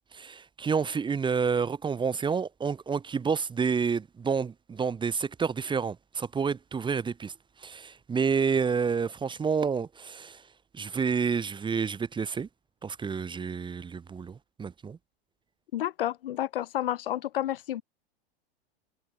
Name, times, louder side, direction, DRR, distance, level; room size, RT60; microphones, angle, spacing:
voice 1, 0.1-10.4 10.7-12.5 12.8-15.0, right 6 dB, 15° right, 1.6 m, -29 dB
voice 2, 15.7-17.8, left 12 dB, 65° left, 2.8 m, -30 dB
figure-of-eight pair, 95°, 30 cm